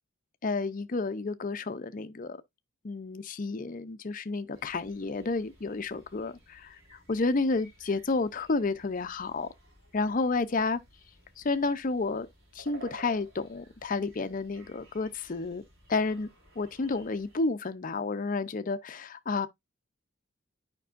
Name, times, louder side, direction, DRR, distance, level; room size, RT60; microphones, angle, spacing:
voice 1, 0.4-2.4 2.8-6.7 7.1-9.5 9.9-10.8 11.4-12.3 12.5-15.6 15.9-16.3 16.6-19.5, left 3 dB, 40° left, 0.5 m, -30 dB
sound 1, 4.5-17.4, right 1 dB, 80° right, 3.6 m, -55 dB
9.3 x 5.2 x 2.5 m
head